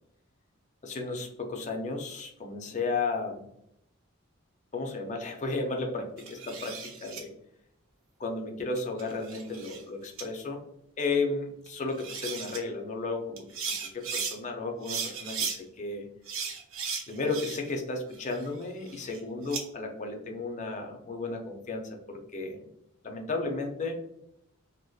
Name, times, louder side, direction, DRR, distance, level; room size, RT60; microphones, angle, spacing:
voice 1, 0.8-3.4 4.7-7.3 8.2-10.6 11.0-13.4 13.9-16.1 17.1-22.6 23.0-23.9, left 3 dB, 35° left, 2 dB, 0.4 m, -33 dB
sound 1, 6.2-7.2 8.8-9.8 10.2-10.3 11.7-11.8 12.0-12.6 13.4-14.4 14.8-15.6 16.3-17.8 18.1-19.6, right 6 dB, 80° right, 0.5 m, -36 dB
2.6 x 2.1 x 2.2 m, 0.79 s
head